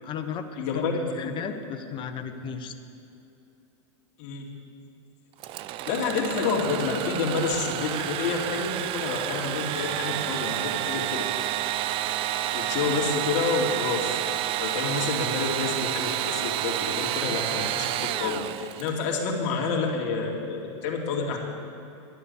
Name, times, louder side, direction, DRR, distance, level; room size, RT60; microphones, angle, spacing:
voice 1, 0.0-2.7, left 7 dB, 30° left, 7 dB, 1.1 m, -35 dB
voice 2, 0.6-0.9 1.2-1.3 4.2-4.5 5.8-11.2 12.5-14.2 14.6-21.4, left 4 dB, 50° left, -1 dB, 2.5 m, -29 dB
Engine / Sawing, 5.4-19.1, right 13 dB, 35° right, 0.4 m, -30 dB
11.0 x 11.0 x 6.9 m, 2.7 s
hypercardioid pair, 125°, 16 cm